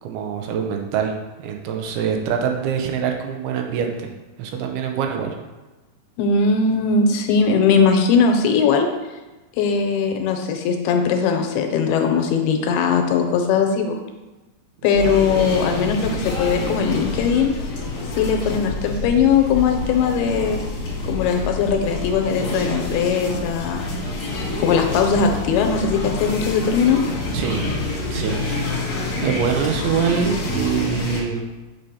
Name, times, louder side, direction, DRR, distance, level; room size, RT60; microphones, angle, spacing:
voice 1, 0.0-1.1 1.4-4.1 4.4-5.4 27.3-27.8 28.1-28.8 29.2-31.5, right 7 dB, 85° right, 3 dB, 2.5 m, -24 dB
voice 2, 6.2-8.9 9.6-14.0 14.8-17.5 18.2-20.6 21.0-23.8 24.6-27.0, left 5 dB, 85° left, 3 dB, 2.5 m, -19 dB
sound 1, 14.9-31.2, left 2 dB, 55° left, 1.7 m, -27 dB
6.3 x 5.8 x 2.7 m, 1.1 s
omnidirectional pair, 4.6 m